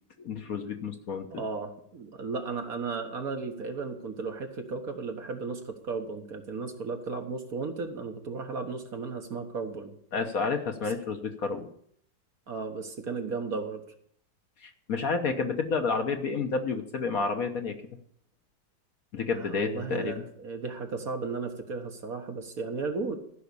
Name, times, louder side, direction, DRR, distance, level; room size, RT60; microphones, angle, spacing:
voice 1, 0.2-1.3 10.1-11.7 14.6-17.7 19.1-20.1, left 4 dB, 55° left, 6 dB, 1.3 m, -30 dB
voice 2, 1.3-9.9 12.5-13.8 19.3-23.2, right 4 dB, 50° right, 4 dB, 1.7 m, -35 dB
14.5 x 5.8 x 8.3 m, 0.66 s
omnidirectional pair, 2.0 m